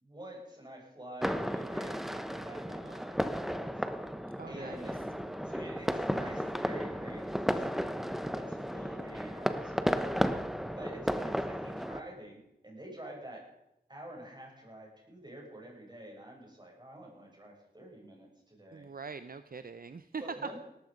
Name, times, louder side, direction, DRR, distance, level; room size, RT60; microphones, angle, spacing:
voice 1, 0.0-3.7 4.4-4.9 5.4-10.3 10.8-13.4 13.9-18.9 20.2-20.6, right 1 dB, 25° right, -1 dB, 7.5 m, -48 dB
sound 1, 1.2-12.0, equal, ahead, 1.1 m, -34 dB
voice 2, 4.4-4.9 18.7-20.2, right 5 dB, 60° right, 12 dB, 0.7 m, -43 dB
18.0 x 14.0 x 5.3 m, 0.86 s
wide cardioid pair, 60°, 17 cm